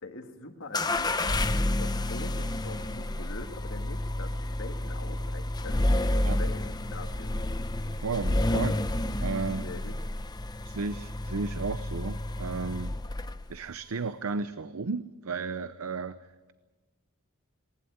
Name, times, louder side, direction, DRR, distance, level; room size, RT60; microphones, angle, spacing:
voice 1, 0.0-7.7 8.5-8.7 9.6-10.0, left 2 dB, 65° left, 5 dB, 2.1 m, -44 dB
sound 1, 0.7-13.6, left 1 dB, 20° left, 0.7 m, -30 dB
voice 2, 7.9-8.7 9.2-9.7 10.6-12.9 13.5-16.5, right 4 dB, 75° right, 13 dB, 0.6 m, -34 dB
19.0 x 19.0 x 9.4 m, 1.3 s
head